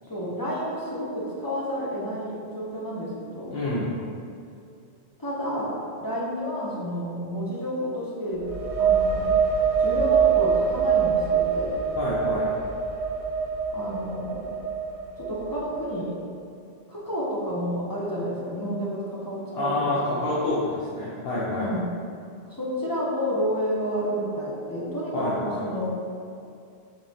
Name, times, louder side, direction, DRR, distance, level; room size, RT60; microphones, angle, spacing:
voice 1, 0.1-3.5 5.2-8.5 8.8-9.3 9.8-11.7 13.7-14.6 15.2-16.2 16.9-20.3 21.5-21.9 22.5-25.9, equal, 25° left, -7 dB, 0.6 m, -30 dB
voice 2, 3.5-4.0 12.0-12.5 19.5-21.7 25.1-25.6, left 2 dB, 65° left, -8 dB, 0.9 m, -27 dB
sound 1, 8.3-15.9, right 6 dB, 40° right, 0.6 m, -24 dB
5.3 x 3.5 x 2.7 m, 2.4 s
omnidirectional pair, 1.1 m